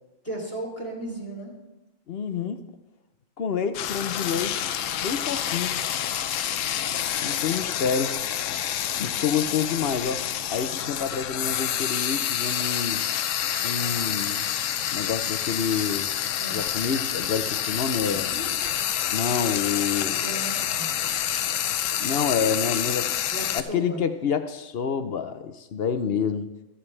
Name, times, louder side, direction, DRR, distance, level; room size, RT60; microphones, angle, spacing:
voice 1, 0.2-1.6 16.3-16.7 18.1-18.5 20.2-20.9 23.3-24.0, right 1 dB, 10° left, -1 dB, 3.0 m, -35 dB
voice 2, 2.1-2.6 3.4-4.6 5.0-5.8 7.2-8.2 9.0-10.2 10.5-13.0 13.6-14.5 14.9-16.1 16.5-18.3 19.1-20.2 22.0-23.1 23.5-26.5, left 6 dB, 55° left, 10 dB, 0.9 m, -28 dB
Frying (food), 3.7-23.6, left 10 dB, 80° left, 1.0 m, -28 dB
14.5 x 14.0 x 3.3 m, 1.0 s
omnidirectional pair, 1.3 m